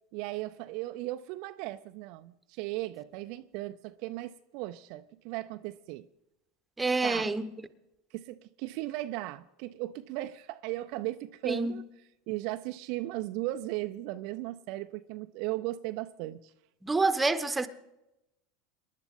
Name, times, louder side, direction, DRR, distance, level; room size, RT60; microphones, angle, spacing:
voice 1, 0.1-6.1 7.0-7.3 8.1-11.8 12.3-16.5, right 17 dB, 55° right, 0.5 m, -37 dB
voice 2, 6.8-7.5 11.5-11.7 16.8-17.7, right 3 dB, 10° right, 1.0 m, -27 dB
26.5 x 11.5 x 3.7 m
figure-of-eight pair, 80°, 0 cm